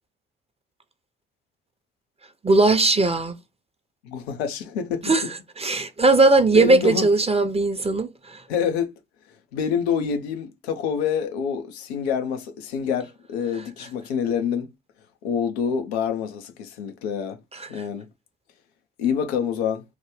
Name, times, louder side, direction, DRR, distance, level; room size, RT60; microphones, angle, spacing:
voice 1, 2.4-3.3 5.0-5.2 5.6-8.4 17.5-17.7, right 2 dB, 20° right, 0.7 m, -19 dB
voice 2, 4.0-5.3 6.5-7.1 8.5-8.9 9.5-14.7 15.2-17.4 17.7-18.1 19.0-19.8, left 7 dB, 85° left, 0.5 m, -26 dB
3.0 x 2.1 x 3.1 m
hypercardioid pair, 45°, 31 cm